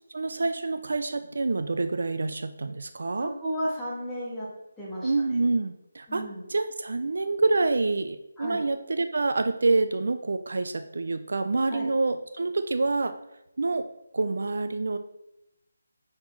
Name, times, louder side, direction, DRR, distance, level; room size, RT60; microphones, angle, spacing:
voice 1, 0.1-3.3 5.0-6.2 6.5-13.1 13.6-13.9 14.1-15.0, right 3 dB, 65° right, 9 dB, 0.4 m, -27 dB
voice 2, 3.2-4.5 4.8-5.1 6.1-6.4 8.4-8.6 11.7-11.9, equal, 5° left, -9 dB, 1.5 m, -33 dB
5.6 x 4.4 x 4.5 m, 0.85 s
figure-of-eight pair, 170°, 0 cm